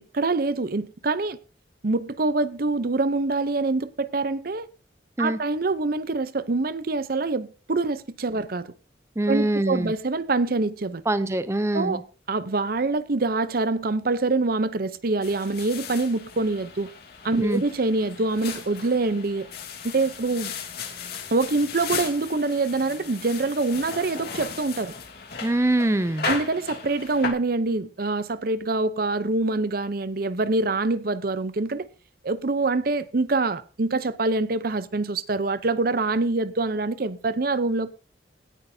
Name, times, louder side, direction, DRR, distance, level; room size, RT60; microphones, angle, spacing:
voice 1, 0.1-1.4 1.8-4.7 5.2-8.7 9.3-11.0 11.7-12.0 12.3-16.9 17.2-19.5 19.8-20.5 21.3-24.9 26.2-31.9 32.2-37.9, right 3 dB, 55° right, 0.7 m, -25 dB
voice 2, 9.2-9.9 11.1-12.0 17.4-17.6 25.4-26.3, right 1 dB, 15° right, 0.5 m, -23 dB
sound 1, 15.2-27.3, left 6 dB, 60° left, 2.5 m, -36 dB
18.0 x 9.7 x 2.8 m
head